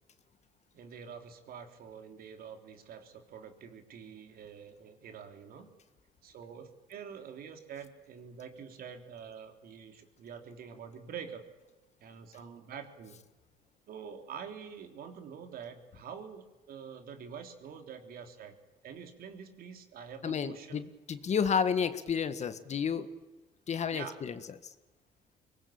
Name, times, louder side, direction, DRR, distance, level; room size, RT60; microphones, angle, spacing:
voice 1, 0.7-5.7 6.2-11.5 12.0-13.2 13.9-18.5 18.8-20.8 23.9-24.2, right 7 dB, 60° right, 6 dB, 3.4 m, -46 dB
voice 2, 20.2-23.1 23.7-24.3, left 7 dB, 40° left, 11 dB, 1.7 m, -31 dB
23.5 x 20.0 x 8.8 m, 1.1 s
cardioid pair, 110°, 17 cm